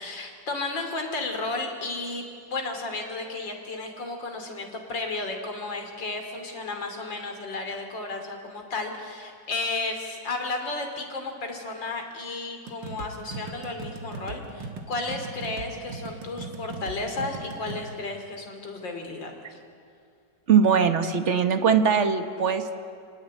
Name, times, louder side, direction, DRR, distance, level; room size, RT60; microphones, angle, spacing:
voice 1, 0.0-2.2 2.5-19.6, left 3 dB, 90° left, 4 dB, 3.7 m, -33 dB
sound 1, 12.7-17.8, right 3 dB, 85° right, 2.2 m, -39 dB
voice 2, 20.5-22.8, right 6 dB, 45° right, 8 dB, 1.5 m, -21 dB
27.0 x 18.0 x 9.7 m, 2.3 s
omnidirectional pair, 1.9 m